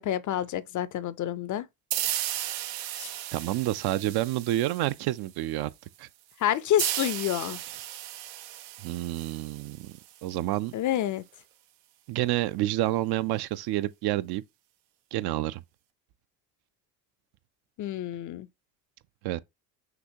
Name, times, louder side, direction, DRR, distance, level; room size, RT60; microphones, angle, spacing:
voice 1, 0.0-1.7 3.0-3.1 6.4-7.6 10.7-11.2 17.8-18.5, left 11 dB, 40° left, 0.5 m, -28 dB
sound 1, 1.9-5.3 6.8-10.3, right 13 dB, 85° right, 0.8 m, -35 dB
voice 2, 3.3-5.7 6.0-6.1 8.8-9.9 10.2-10.7 12.1-14.4 15.1-15.6 19.2-19.4, right 15 dB, 55° right, 0.5 m, -28 dB
6.0 x 2.8 x 2.7 m
hypercardioid pair, 75°, 49 cm